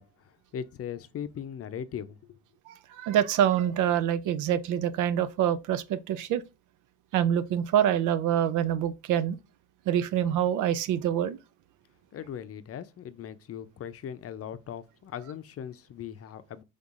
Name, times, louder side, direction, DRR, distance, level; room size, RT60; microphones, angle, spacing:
voice 1, 0.0-2.4 12.1-16.6, left 9 dB, 50° left, 0.6 m, -39 dB
voice 2, 2.7-6.4 7.1-9.4 9.9-11.4, right 10 dB, 80° right, 0.5 m, -26 dB
5.4 x 3.5 x 2.5 m
cardioid pair, 90°, 30 cm